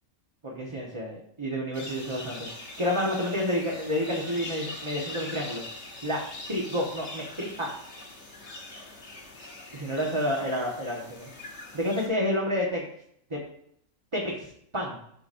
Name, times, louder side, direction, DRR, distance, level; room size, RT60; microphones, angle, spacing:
voice 1, 0.4-5.6 6.0-6.2 6.5-7.7 9.7-11.3 11.7-12.8 13.3-13.4 14.1-14.5 14.7-15.0, equal, 25° right, -3 dB, 1.1 m, -29 dB
sound 1, 1.7-12.1, left 2 dB, 60° left, 1.7 m, -42 dB
12.0 x 4.9 x 2.6 m, 0.70 s
omnidirectional pair, 1.4 m